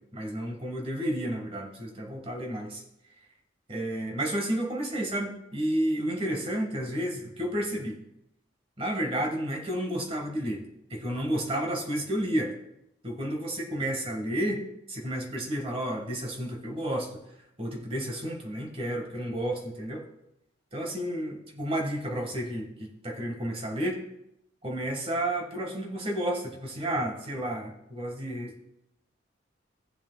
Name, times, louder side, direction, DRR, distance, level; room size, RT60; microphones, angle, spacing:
voice 1, 0.1-2.8 3.7-8.0 8.8-10.6 10.9-12.5 13.0-17.2 17.6-20.0 20.7-24.0 24.6-28.5, right 1 dB, 30° right, 1 dB, 1.8 m, -31 dB
17.0 x 7.4 x 2.4 m, 0.81 s
head